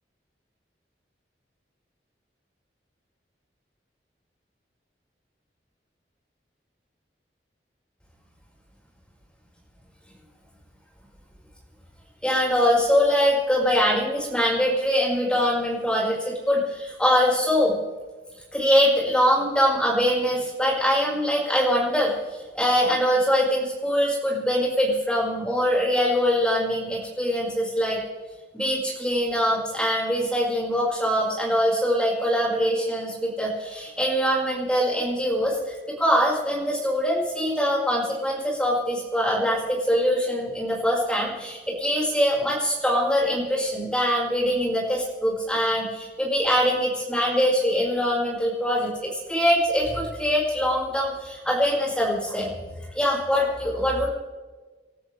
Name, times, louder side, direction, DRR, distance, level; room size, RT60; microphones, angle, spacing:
voice 1, 12.2-17.7 18.5-22.1 22.5-28.0 28.5-52.5 52.9-54.1, equal, 5° left, -4 dB, 5.5 m, -23 dB
28.5 x 13.5 x 3.5 m, 1.3 s
head